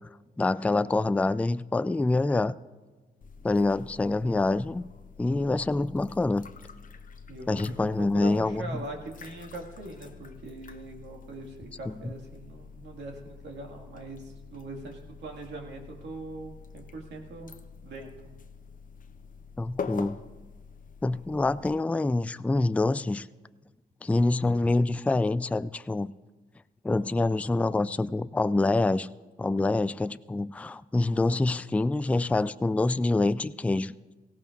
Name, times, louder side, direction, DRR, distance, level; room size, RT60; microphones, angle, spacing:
voice 1, 0.4-2.6 3.4-4.9 5.2-6.5 7.5-8.8 11.9-12.1 19.6-20.2 21.0-23.3 24.0-26.1 26.8-29.1 29.4-33.9, left 2 dB, 10° left, 15 dB, 0.3 m, -26 dB
sound 1, 3.2-21.8, left 5 dB, 50° left, 0.8 m, -46 dB
voice 2, 7.3-17.5 17.8-18.1, right 2 dB, 85° right, 1 dB, 2.0 m, -41 dB
18.0 x 15.0 x 2.5 m, 1.3 s
cardioid pair, 60°, 18 cm